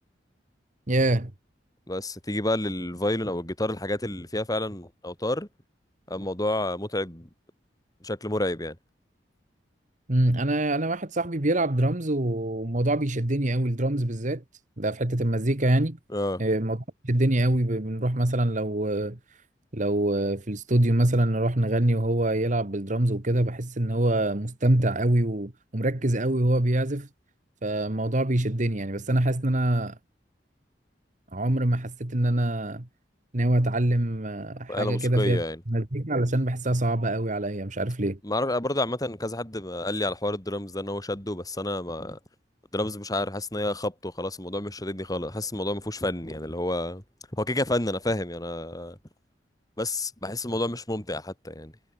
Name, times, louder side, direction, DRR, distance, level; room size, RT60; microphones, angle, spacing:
voice 1, 0.9-1.3 10.1-14.4 14.8-16.0 16.4-16.8 17.0-19.2 19.7-27.1 27.6-29.9 31.3-32.9 33.3-38.2, right 1 dB, 45° right, 1.8 m, -25 dB
voice 2, 1.9-5.5 6.1-7.3 8.0-8.8 16.1-16.4 34.7-35.6 38.2-42.2 42.7-47.0 47.3-49.0 49.8-51.7, left 1 dB, 20° left, 3.9 m, -29 dB
head